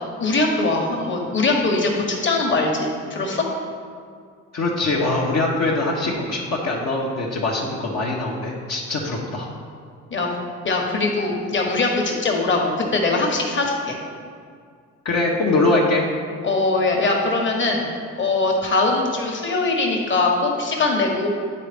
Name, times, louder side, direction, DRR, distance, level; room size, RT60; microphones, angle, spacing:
voice 1, 0.2-3.5 10.1-10.3 10.6-14.0 16.4-17.9 18.2-21.3, left 3 dB, 40° left, 0 dB, 1.2 m, -21 dB
voice 2, 4.5-9.5 15.0-16.1, left 2 dB, 60° left, -4 dB, 1.0 m, -22 dB
9.8 x 3.9 x 3.4 m, 2.2 s
cardioid pair, 90°, 30 cm